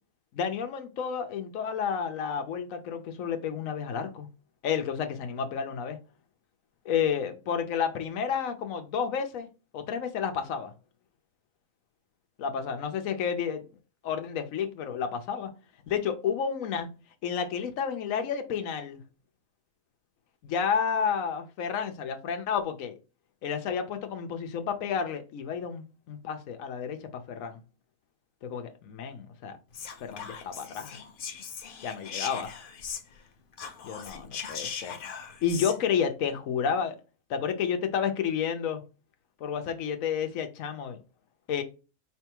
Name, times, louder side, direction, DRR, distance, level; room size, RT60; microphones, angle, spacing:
voice 1, 0.3-4.3 4.6-6.0 6.8-9.5 9.7-10.7 12.4-13.6 14.0-15.5 15.9-16.9 17.2-19.0 20.4-23.0 23.4-27.6 28.4-29.6 30.0-31.0 31.8-32.5 33.8-35.0 35.4-37.0 37.3-38.8 39.4-41.0 41.5-41.6, left 7 dB, 75° left, 1.2 m, -31 dB
Whispering, 29.7-33.3 33.5-35.8, left 6 dB, 50° left, 0.7 m, -39 dB
5.0 x 3.4 x 2.9 m
omnidirectional pair, 1.4 m